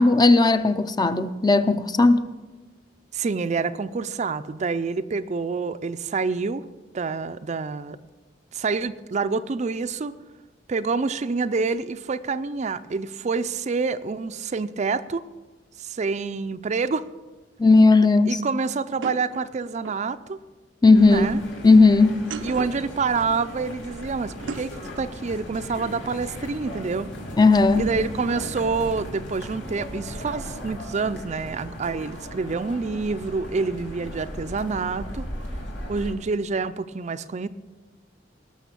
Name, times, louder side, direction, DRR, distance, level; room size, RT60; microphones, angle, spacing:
voice 1, 0.0-2.3 17.6-18.4 20.8-21.3 21.6-22.2 27.4-27.8, left 3 dB, 20° left, 0.5 m, -16 dB
voice 2, 3.1-6.7 6.9-8.0 8.5-10.1 10.7-15.2 15.8-17.1 18.3-20.4 21.0-21.4 22.4-27.1 27.8-35.3 35.9-37.5, right 4 dB, 40° right, 0.4 m, -27 dB
sound 1, 19.0-20.1 22.1-22.9 24.3-24.8, right 4 dB, 90° right, 0.6 m, -36 dB
sound 2, 20.9-36.1, equal, 80° left, 3.0 m, -37 dB
18.5 x 6.4 x 6.8 m
head